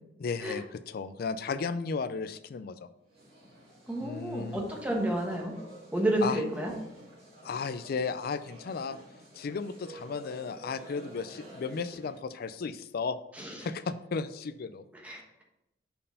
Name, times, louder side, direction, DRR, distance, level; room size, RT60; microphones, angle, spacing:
voice 1, 0.2-2.9 4.0-4.7 6.2-6.4 7.4-9.0 9.3-13.2 13.6-14.8, left 5 dB, 55° left, 13 dB, 0.4 m, -34 dB
sound 1, 3.1-12.2, right 1 dB, 35° right, 2.2 m, -51 dB
voice 2, 3.9-5.5 5.9-6.7 13.4-13.6 15.0-15.4, right 1 dB, 10° right, 0 dB, 1.2 m, -30 dB
5.5 x 4.4 x 5.3 m, 0.87 s
head